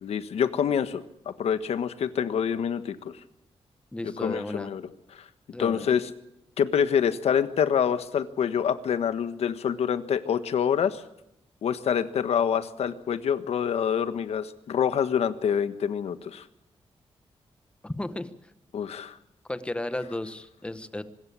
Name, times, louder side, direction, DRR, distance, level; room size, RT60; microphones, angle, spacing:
voice 1, 0.0-3.0 4.2-4.8 5.6-6.1 6.6-11.0 11.6-16.4 18.7-19.1, left 8 dB, 85° left, 12 dB, 1.4 m, -26 dB
voice 2, 3.9-4.7 5.5-5.9 17.8-18.3 19.5-21.0, left 1 dB, 10° left, 12 dB, 1.1 m, -34 dB
25.0 x 13.5 x 8.5 m, 0.83 s
wide cardioid pair, 160°, 10 cm